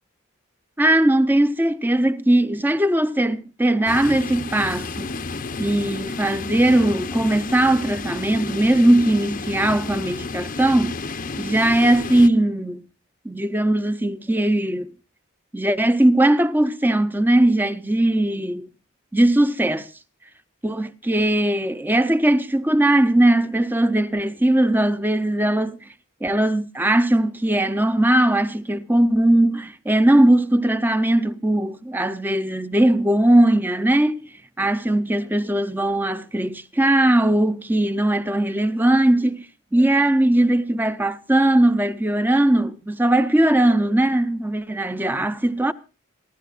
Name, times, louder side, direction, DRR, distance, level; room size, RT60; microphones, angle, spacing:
voice 1, 0.8-5.1 5.6-12.8 13.2-14.9 15.5-18.7 19.1-19.9 20.6-25.9 26.2-34.2 34.6-45.7, right 1 dB, 10° right, 0.6 m, -19 dB
sound 1, 3.9-12.3, left 3 dB, 40° left, 0.7 m, -31 dB
27.5 x 11.5 x 2.4 m
head